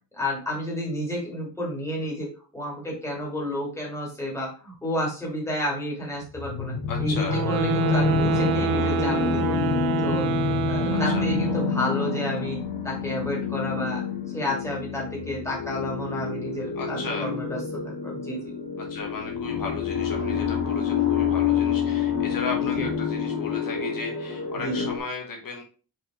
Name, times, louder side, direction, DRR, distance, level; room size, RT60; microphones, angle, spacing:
voice 1, 0.1-2.3 2.5-9.6 10.0-14.0 14.3-18.5 22.6-22.9 24.5-24.9, left 1 dB, 10° left, -4 dB, 2.5 m, -31 dB
sound 1, 6.3-25.0, left 6 dB, 90° left, 1.5 m, -27 dB
voice 2, 6.9-7.4 10.9-11.3 16.8-17.3 18.8-25.6, left 4 dB, 65° left, 1 dB, 1.3 m, -35 dB
sound 2, 7.2-11.8, right 7 dB, 90° right, 0.8 m, -27 dB
4.9 x 4.7 x 4.3 m, 0.37 s
wide cardioid pair, 175°, 35 cm